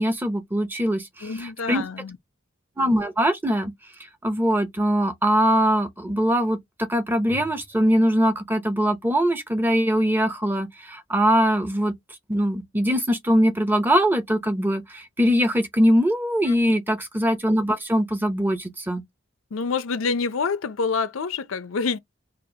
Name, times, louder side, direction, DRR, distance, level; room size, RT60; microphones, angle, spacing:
voice 1, 0.0-1.8 2.8-3.7 4.2-11.9 12.3-19.0, equal, 10° right, 0.7 m, -22 dB
voice 2, 1.2-2.2 16.5-16.6 19.5-22.0, left 5 dB, 85° left, 0.5 m, -27 dB
4.2 x 2.5 x 2.7 m
head